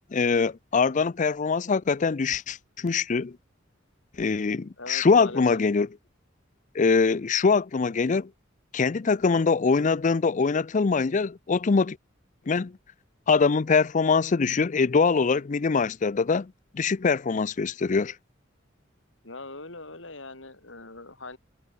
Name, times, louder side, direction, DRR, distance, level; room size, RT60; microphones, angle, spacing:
voice 1, 0.1-3.3 4.2-5.9 6.7-8.3 8.7-12.0 12.5-12.7 13.3-18.1, left 4 dB, 40° left, 0.5 m, -23 dB
voice 2, 4.8-5.4 19.2-21.4, left 2 dB, 75° left, 6.5 m, -41 dB
head